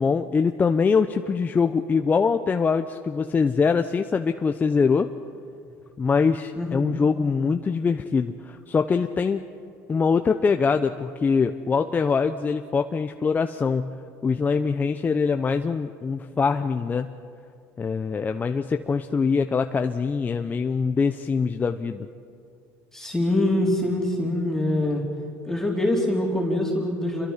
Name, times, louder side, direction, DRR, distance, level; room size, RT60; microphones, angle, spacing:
voice 1, 0.0-5.1 6.0-9.4 9.9-17.1 17.8-22.1, left 5 dB, 25° left, 7 dB, 0.8 m, -23 dB
voice 2, 22.9-25.0 25.5-27.3, left 1 dB, 5° left, -2 dB, 4.0 m, -24 dB
27.5 x 23.0 x 5.8 m, 2.4 s
supercardioid pair, 110°, 7 cm